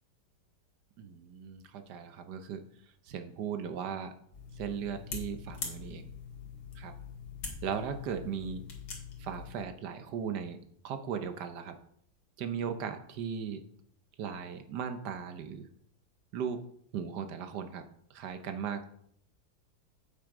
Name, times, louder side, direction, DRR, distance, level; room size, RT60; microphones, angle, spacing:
voice 1, 1.0-2.6 3.0-4.1 4.5-6.1 6.7-6.9 7.6-8.6 9.2-10.6 10.8-11.8 12.4-13.6 14.2-15.7 16.3-16.6 16.9-17.8 18.1-18.9, right 7 dB, 80° right, 8 dB, 1.4 m, -37 dB
sound 1, 4.3-9.7, left 5 dB, 70° left, 2.3 m, -43 dB
8.5 x 6.2 x 4.9 m, 0.67 s
omnidirectional pair, 1.8 m